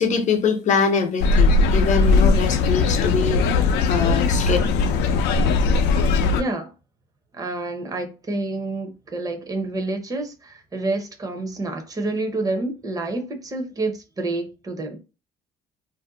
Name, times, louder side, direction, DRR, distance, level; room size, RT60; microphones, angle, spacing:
voice 1, 0.0-3.4 3.8-4.6, left 5 dB, 45° left, 0.7 m, -23 dB
sound 1, 1.2-6.4, left 4 dB, 80° left, 0.5 m, -19 dB
voice 2, 6.3-6.7 7.3-15.0, right 2 dB, 20° right, 0.7 m, -28 dB
2.5 x 2.1 x 3.8 m
cardioid pair, 110°, 17 cm